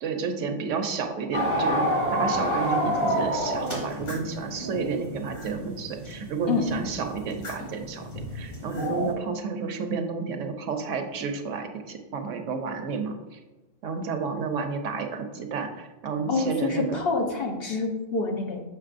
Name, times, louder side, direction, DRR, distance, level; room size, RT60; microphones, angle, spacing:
voice 1, 0.0-13.4 13.8-17.0, right 5 dB, 75° right, 5 dB, 1.0 m, -31 dB
sound 1, 1.3-9.1, equal, 35° left, 2.1 m, -29 dB
sound 2, 3.7-4.4 4.9-5.6 7.2-7.9 8.5-9.0, left 2 dB, 75° left, 1.3 m, -43 dB
voice 2, 16.3-18.6, left 4 dB, 55° left, 1 dB, 1.0 m, -27 dB
6.6 x 6.1 x 2.5 m, 1.1 s
omnidirectional pair, 1.3 m